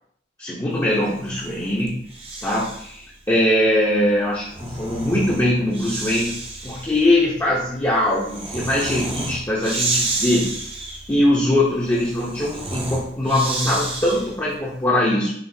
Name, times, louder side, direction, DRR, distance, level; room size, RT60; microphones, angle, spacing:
voice 1, 0.4-2.0 2.4-6.4 6.6-10.5 11.1-15.3, left 1 dB, 20° left, -7 dB, 0.8 m, -21 dB
Breathing, 1.0-3.0 4.2-14.5, right 2 dB, 35° right, 0.8 m, -31 dB
5.7 x 2.4 x 2.7 m, 0.68 s
head